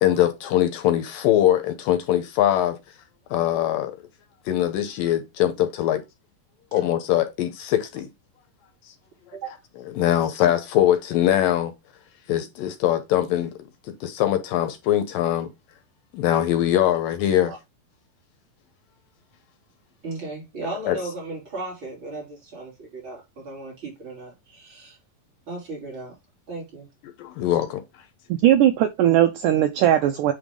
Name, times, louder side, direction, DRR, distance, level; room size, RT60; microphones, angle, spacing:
voice 1, 0.0-2.8 3.3-4.0 4.5-6.0 6.7-8.1 10.0-11.7 12.3-13.5 14.0-15.5 16.1-17.5 20.9-21.0 27.2-27.8, left 12 dB, 75° left, 2.3 m, -22 dB
voice 2, 20.0-25.0 25.5-26.2 26.5-26.9, right 3 dB, 30° right, 3.7 m, -36 dB
voice 3, 28.3-30.3, right 12 dB, 85° right, 1.8 m, -18 dB
9.0 x 3.9 x 3.6 m
omnidirectional pair, 4.3 m